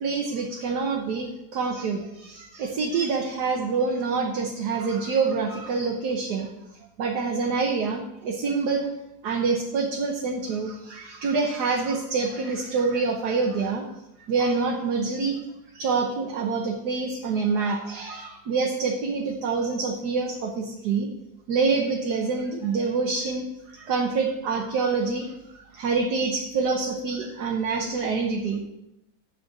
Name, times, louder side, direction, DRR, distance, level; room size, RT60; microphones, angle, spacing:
voice 1, 0.0-6.5 7.0-8.9 9.2-13.8 14.3-15.4 15.7-21.1 21.5-25.3 25.7-28.7, right 4 dB, 80° right, 0 dB, 1.6 m, -26 dB
11.0 x 4.3 x 7.7 m, 0.89 s
omnidirectional pair, 1.7 m